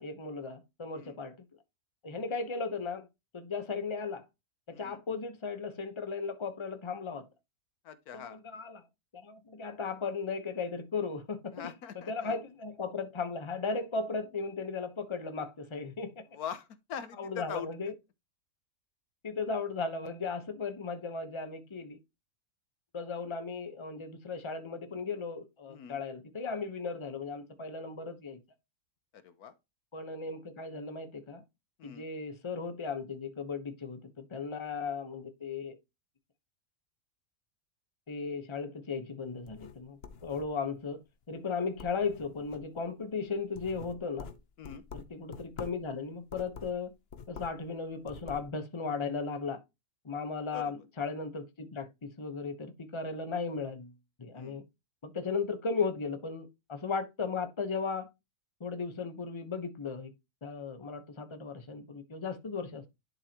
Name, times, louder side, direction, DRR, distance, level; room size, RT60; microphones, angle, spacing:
voice 1, 0.0-1.4 2.0-3.1 3.3-4.2 4.7-7.3 8.1-8.8 9.1-11.6 12.1-16.3 17.2-17.9 19.2-22.0 22.9-28.4 29.9-31.4 31.8-35.8 38.1-41.0 41.3-44.3 44.9-46.9 47.3-49.6 50.0-54.6 55.0-58.1 58.6-60.1 60.4-62.9, left 4 dB, 20° left, 1.0 m, -36 dB
voice 2, 7.8-8.4 11.5-12.4 16.3-17.7 25.7-26.0 29.1-29.5 31.8-32.1 44.6-44.8 50.5-50.7 54.3-54.6, left 8 dB, 80° left, 1.4 m, -42 dB
sound 1, 39.3-40.8 41.2-41.5 41.8-42.8 43.3-45.9 46.2-47.7 47.9-48.5, left 6 dB, 50° left, 1.0 m, -47 dB
11.0 x 4.8 x 3.0 m
omnidirectional pair, 1.6 m